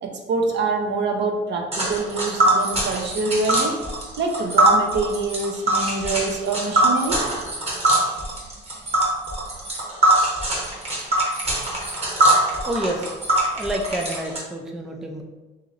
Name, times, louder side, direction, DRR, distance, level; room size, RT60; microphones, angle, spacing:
voice 1, 0.0-3.8 4.2-7.2, right 3 dB, 60° right, 2 dB, 0.6 m, -25 dB
Tick, 1.7-14.4, right 1 dB, 30° right, 1.0 m, -22 dB
voice 2, 12.7-13.1 13.5-15.2, right 1 dB, ahead, 1 dB, 0.3 m, -28 dB
2.9 x 2.7 x 2.5 m, 1.1 s
cardioid pair, 90°, 20 cm